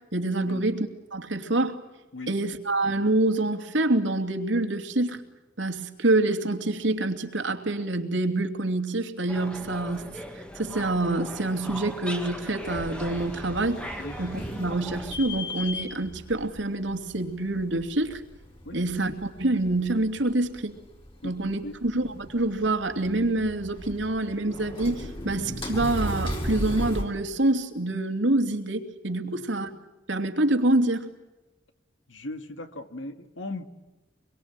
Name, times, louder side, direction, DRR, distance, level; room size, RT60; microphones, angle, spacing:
voice 1, 0.0-1.8 2.3-5.2 5.6-10.2 10.5-13.8 14.2-18.2 18.7-20.7 21.2-29.7 30.1-31.1, right 2 dB, 80° right, 5 dB, 2.8 m, -26 dB
sound 1, 9.3-15.2, equal, 5° left, 2.0 m, -39 dB
sound 2, 12.6-27.0, left 1 dB, 30° left, 4.8 m, -37 dB
voice 2, 32.1-33.7, left 2 dB, 90° left, 8 dB, 2.2 m, -38 dB
26.0 x 23.0 x 9.0 m, 1.1 s
head